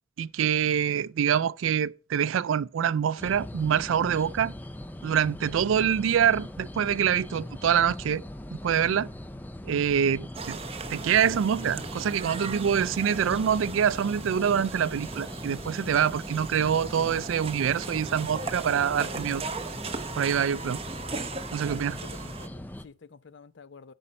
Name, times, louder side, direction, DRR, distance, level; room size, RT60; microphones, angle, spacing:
voice 1, 0.2-4.5 5.0-8.2 8.5-9.1 9.7-10.6 10.9-19.4 20.1-20.8 21.5-22.0, right 8 dB, 90° right, 0.4 m, -25 dB
sound 1, 3.2-22.8, left 1 dB, 10° left, 0.4 m, -40 dB
sound 2, 10.3-22.5, right 4 dB, 30° right, 0.7 m, -38 dB
voice 2, 21.5-23.9, left 5 dB, 65° left, 0.5 m, -50 dB
12.5 x 5.4 x 4.3 m
head